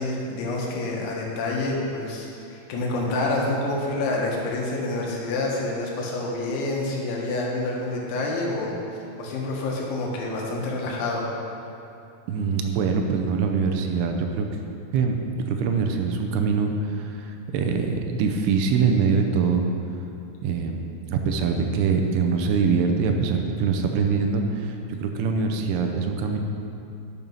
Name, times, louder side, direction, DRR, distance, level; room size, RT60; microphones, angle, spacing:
voice 1, 0.0-8.8 9.2-11.3, left 2 dB, 70° left, -2 dB, 3.6 m, -27 dB
voice 2, 12.3-14.5 14.9-19.7 20.4-26.4, right 5 dB, 80° right, 4 dB, 3.0 m, -24 dB
11.0 x 7.1 x 5.5 m, 2.7 s
omnidirectional pair, 5.9 m